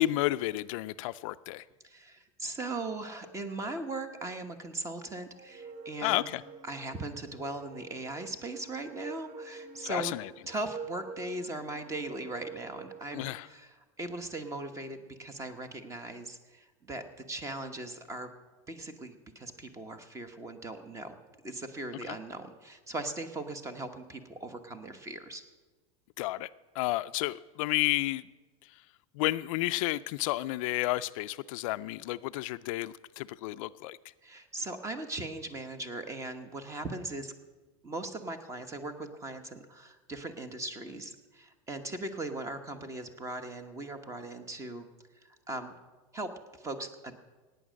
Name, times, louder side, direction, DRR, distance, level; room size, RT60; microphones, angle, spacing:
voice 1, 0.0-1.6 6.0-6.4 9.8-10.3 13.1-13.5 26.2-26.5 26.8-28.3 29.1-34.0, left 17 dB, 70° left, 14 dB, 0.4 m, -31 dB
voice 2, 1.8-6.2 6.6-10.2 10.5-18.3 18.7-21.2 21.4-25.4 34.2-37.3 37.8-44.9 45.2-45.7 46.1-46.3 46.6-47.2, right 2 dB, 15° right, 9 dB, 1.1 m, -39 dB
sound 1, 5.3-13.5, right 4 dB, 50° right, 1.0 m, -47 dB
17.0 x 9.3 x 6.4 m, 1.2 s
supercardioid pair, 140°, 18 cm